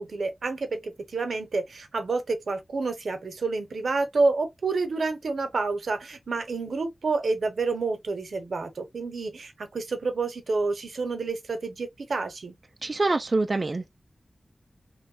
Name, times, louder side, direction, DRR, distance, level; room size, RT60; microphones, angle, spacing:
voice 1, 0.0-12.5, right 3 dB, 90° right, 0.8 m, -29 dB
voice 2, 12.8-13.9, right 3 dB, 45° right, 0.3 m, -25 dB
3.0 x 2.2 x 2.7 m
wide cardioid pair, 105°, 0 cm